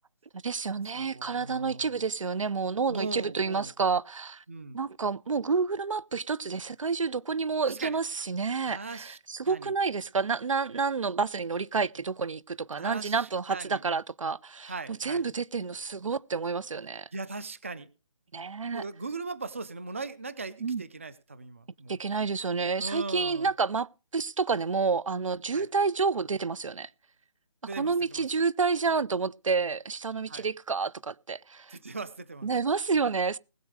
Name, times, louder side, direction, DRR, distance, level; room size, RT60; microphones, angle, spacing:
voice 1, 0.4-4.4 4.7-14.7 15.0-17.1 18.3-18.8 20.6-20.8 21.9-26.9 27.8-31.8 32.4-33.4, right 5 dB, 75° right, 0.7 m, -29 dB
voice 2, 0.9-1.9 2.9-3.7 4.5-4.8 7.6-8.0 8.6-9.2 9.4-9.7 12.8-13.8 14.7-15.2 17.1-17.9 18.7-22.0 22.8-23.5 25.5-25.7 27.7-28.2 30.3-30.5 31.7-32.5, right 3 dB, 25° right, 0.5 m, -39 dB
20.0 x 7.5 x 4.7 m
hypercardioid pair, 180°, 17 cm